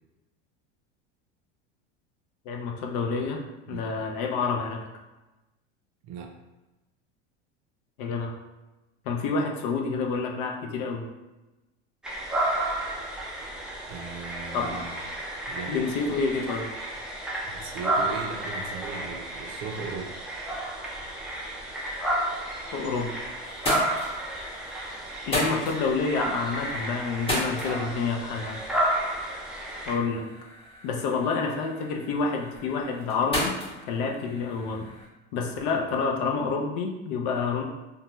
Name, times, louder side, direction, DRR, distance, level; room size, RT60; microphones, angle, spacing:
voice 1, 2.5-4.9 8.0-8.3 9.0-11.1 14.5-14.8 15.7-16.7 22.7-23.2 25.3-28.6 29.9-30.3 30.8-33.5 33.9-34.9 35.3-37.6, left 4 dB, 60° left, 2 dB, 0.6 m, -28 dB
voice 2, 6.0-6.3 13.9-14.9 15.5-15.8 17.4-20.2, right 5 dB, 50° right, 2 dB, 0.6 m, -38 dB
sound 1, 12.0-29.9, right 1 dB, ahead, 0.4 m, -32 dB
sound 2, 22.6-23.1 23.4-35.1, equal, 15° left, 0.9 m, -36 dB
2.7 x 2.3 x 3.0 m, 1.1 s
supercardioid pair, 120°, 35 cm